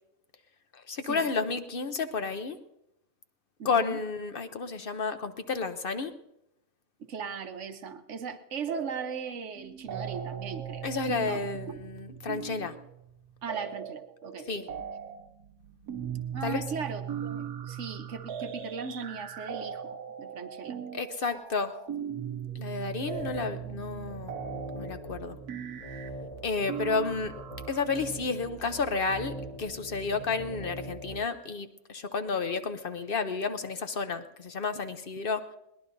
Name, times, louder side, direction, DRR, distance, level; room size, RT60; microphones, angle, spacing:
voice 1, 0.7-2.6 3.6-6.1 10.8-12.7 14.5-14.7 16.4-16.6 20.9-21.8 22.5-24.3 24.7-25.4 26.4-27.3 27.7-35.4, left 4 dB, 50° left, 9 dB, 0.7 m, -31 dB
voice 2, 3.6-4.0 7.0-10.9 11.3-11.8 13.4-14.5 16.3-20.8 21.2-21.3, right 6 dB, 60° right, 8 dB, 1.1 m, -38 dB
sound 1, 8.7-9.3 9.6-27.8, right 8 dB, 85° right, 1.4 m, -39 dB
sound 2, 23.1-31.2, right 1 dB, 70° left, 4.7 m, -43 dB
21.5 x 19.0 x 2.6 m, 0.85 s
omnidirectional pair, 1.6 m